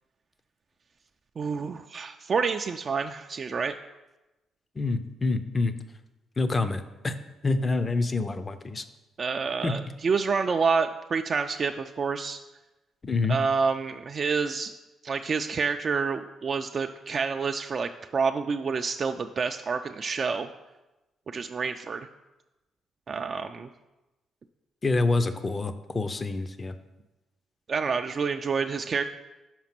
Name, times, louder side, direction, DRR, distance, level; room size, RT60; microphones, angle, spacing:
voice 1, 1.4-3.7 9.2-12.4 13.3-14.7 15.0-20.5 21.3-22.1 23.1-23.7 27.7-29.0, right 5 dB, 45° right, 5 dB, 0.3 m, -28 dB
voice 2, 4.8-5.8 6.4-7.1 7.4-8.8 9.6-9.8 13.0-13.4 24.8-26.8, left 3 dB, 30° left, 10 dB, 0.5 m, -27 dB
6.0 x 5.1 x 5.8 m, 1.0 s
cardioid pair, 90°, 0 cm